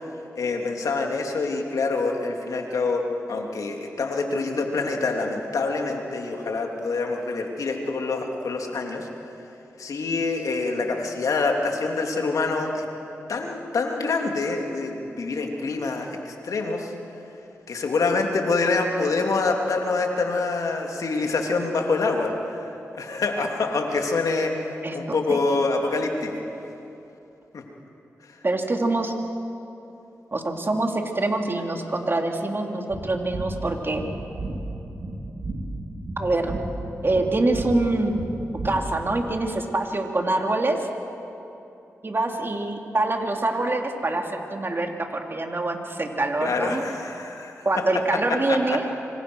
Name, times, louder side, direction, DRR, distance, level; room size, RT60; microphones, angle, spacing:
voice 1, 0.3-9.1 9.8-12.8 13.3-16.9 17.7-22.6 22.9-26.4 27.5-27.6 28.2-28.4 46.4-48.9, left 3 dB, 75° left, 2 dB, 3.0 m, -26 dB
voice 2, 24.8-25.4 28.4-29.1 30.3-34.0 36.2-36.5 37.0-38.2 38.6-40.8 42.0-46.8 47.6-48.8, right 2 dB, 40° right, 2 dB, 3.3 m, -25 dB
sound 1, 32.9-39.2, right 2 dB, 65° right, 4.5 m, -33 dB
26.0 x 25.0 x 6.4 m, 2.9 s
cardioid pair, 45°, 6 cm